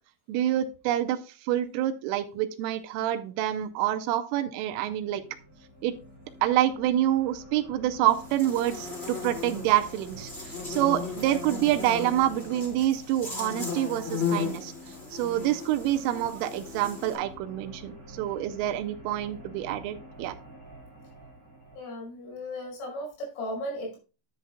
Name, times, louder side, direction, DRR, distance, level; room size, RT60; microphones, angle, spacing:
voice 1, 0.3-5.2 5.8-5.9 6.4-14.7 15.1-20.4, right 13 dB, 80° right, 9 dB, 3.1 m, -27 dB
sound 1, 4.8-21.8, equal, 10° left, 1.5 m, -47 dB
Buzz, 8.1-17.1, left 5 dB, 55° left, 0.7 m, -36 dB
voice 2, 21.8-24.0, equal, 75° left, -2 dB, 7.8 m, -36 dB
11.0 x 8.7 x 2.3 m, 0.33 s
omnidirectional pair, 6.0 m